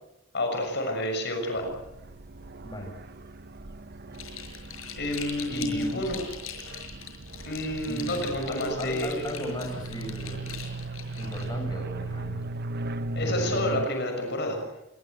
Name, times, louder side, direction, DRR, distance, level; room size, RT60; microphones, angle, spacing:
voice 1, 0.3-1.7 5.0-6.2 7.5-9.2 13.1-14.6, left 1 dB, 60° left, 4 dB, 6.4 m, -29 dB
sound 1, 1.6-13.9, right 2 dB, 55° right, 1.0 m, -37 dB
sound 2, 4.1-11.5, left 8 dB, 85° left, 6.1 m, -42 dB
voice 2, 5.5-6.0 7.9-10.5 11.1-12.4 13.2-13.6, left 1 dB, 20° left, 2 dB, 7.3 m, -36 dB
26.5 x 23.0 x 8.1 m, 0.94 s
head